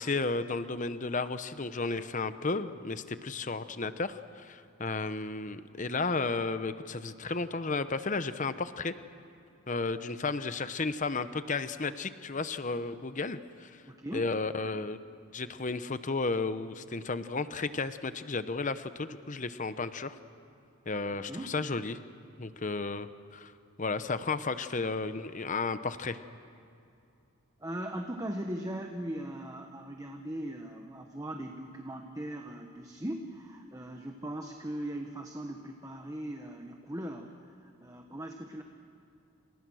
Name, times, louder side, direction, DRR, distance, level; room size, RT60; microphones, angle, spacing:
voice 1, 0.0-8.9 9.7-13.8 14.1-15.0 15.3-20.1 20.9-22.0 22.4-23.5 23.8-26.2, left 3 dB, 35° left, 12 dB, 0.8 m, -33 dB
voice 2, 13.9-14.3 21.3-21.5 22.6-22.7 27.6-38.6, right 1 dB, 15° right, 3 dB, 1.2 m, -39 dB
29.0 x 28.0 x 6.3 m, 2.6 s
head